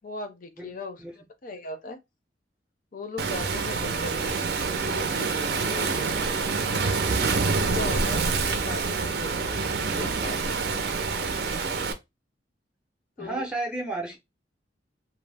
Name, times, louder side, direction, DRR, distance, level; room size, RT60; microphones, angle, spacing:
voice 1, 0.0-2.0 2.9-4.5 4.9-6.0 6.4-7.0 7.7-10.4 13.2-13.5, left 3 dB, 50° left, 0.6 m, -39 dB
voice 2, 0.6-1.1 13.2-14.2, right 2 dB, 5° right, 0.6 m, -33 dB
Waves surf, 3.2-11.9, right 4 dB, 60° right, 0.5 m, -26 dB
2.6 x 2.0 x 3.3 m
head